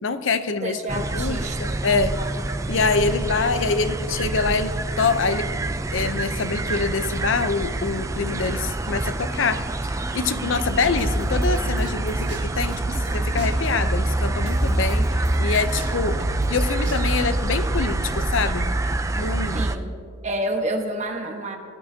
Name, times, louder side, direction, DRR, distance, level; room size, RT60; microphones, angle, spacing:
voice 1, 0.0-0.8 1.1-2.2 2.7-5.5 5.9-18.7 19.2-19.7, left 4 dB, 80° left, 11 dB, 0.7 m, -25 dB
voice 2, 0.6-1.8 2.2-2.3 9.3-9.5 19.5-19.9 20.2-21.6, right 1 dB, 35° right, 3 dB, 1.2 m, -29 dB
sound 1, 0.9-19.8, right 2 dB, 15° right, 0.3 m, -26 dB
sound 2, 11.0-13.1 13.4-17.9, right 1 dB, 65° right, 1.4 m, -30 dB
19.0 x 12.0 x 2.8 m, 2.2 s
head